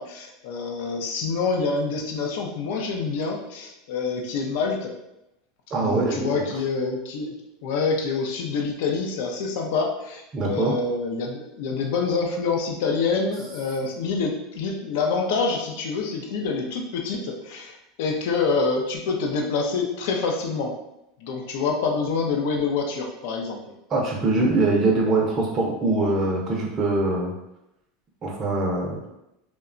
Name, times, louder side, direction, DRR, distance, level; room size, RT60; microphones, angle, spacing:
voice 1, 0.0-4.9 5.7-7.3 7.6-20.7 21.2-23.6, left 4 dB, 70° left, 2 dB, 0.4 m, -26 dB
voice 2, 5.7-6.4 10.3-10.7 23.9-27.3 28.2-29.1, right 2 dB, 30° right, -2 dB, 0.5 m, -23 dB
2.8 x 2.1 x 2.4 m, 0.87 s
supercardioid pair, 125°, 0 cm